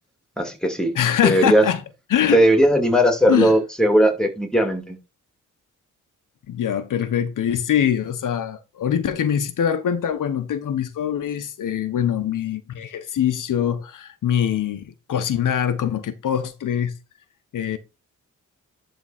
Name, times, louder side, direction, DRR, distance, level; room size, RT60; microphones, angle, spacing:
voice 1, 0.4-0.9 1.2-1.6 2.3-5.0, equal, ahead, 2.4 m, -18 dB
voice 2, 0.9-1.8 2.1-2.4 3.3-3.5 6.5-16.9 17.5-17.8, left 9 dB, 80° left, 1.0 m, -23 dB
11.0 x 3.7 x 4.2 m
cardioid pair, 105°, 31 cm